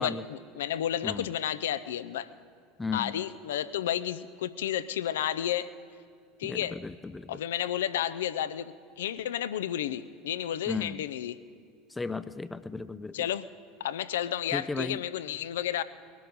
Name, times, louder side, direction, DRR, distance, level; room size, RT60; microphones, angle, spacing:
voice 1, 0.0-2.3 2.9-5.7 6.4-6.8 7.3-11.4 13.1-13.4 13.8-15.8, left 11 dB, 75° left, 15 dB, 0.5 m, -32 dB
voice 2, 2.8-3.2 6.4-7.3 10.7-11.0 12.0-13.1 14.5-15.0, left 4 dB, 15° left, 13 dB, 0.4 m, -35 dB
20.5 x 12.5 x 5.3 m, 2.3 s
hypercardioid pair, 80°, 0 cm